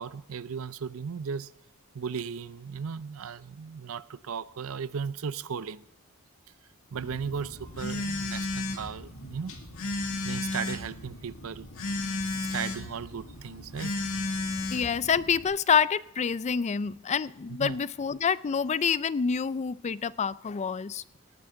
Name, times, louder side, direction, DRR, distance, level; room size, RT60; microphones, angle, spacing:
voice 1, 0.0-1.5 1.9-5.8 6.9-9.5 10.2-11.7 12.4-13.9 14.3-14.4 17.6-17.8, right 6 dB, 70° right, 0.5 m, -36 dB
Telephone, 6.9-15.5, left 2 dB, 70° left, 2.1 m, -34 dB
voice 2, 14.7-21.0, left 6 dB, 30° left, 0.4 m, -27 dB
18.5 x 9.3 x 3.8 m
head